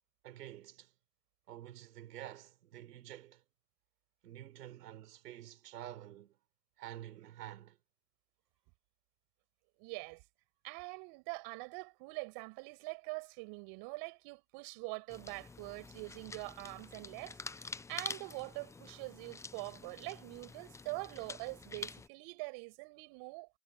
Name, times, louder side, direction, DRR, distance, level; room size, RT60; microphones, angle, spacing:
voice 1, 0.2-0.9 1.5-3.4 4.2-6.4 6.8-7.8, right 12 dB, 85° right, 4.2 m, -49 dB
voice 2, 9.8-10.2 10.6-23.5, right 31 dB, 55° right, 6.5 m, -44 dB
sound 1, 15.1-22.1, left 4 dB, 5° left, 0.4 m, -47 dB
hypercardioid pair, 110°, 46 cm